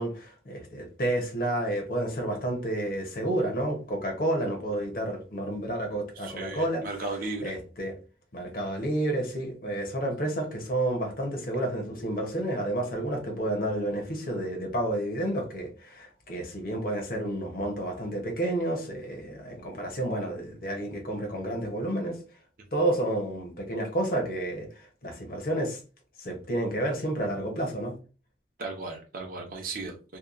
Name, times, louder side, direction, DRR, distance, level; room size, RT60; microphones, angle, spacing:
voice 1, 0.0-6.8 7.4-7.9 8.3-22.2 22.7-25.8 26.2-27.9, right 1 dB, 50° left, 0.7 m, -30 dB
voice 2, 6.2-7.5 28.6-30.2, right 3 dB, 50° right, 0.5 m, -36 dB
2.7 x 2.2 x 2.4 m
head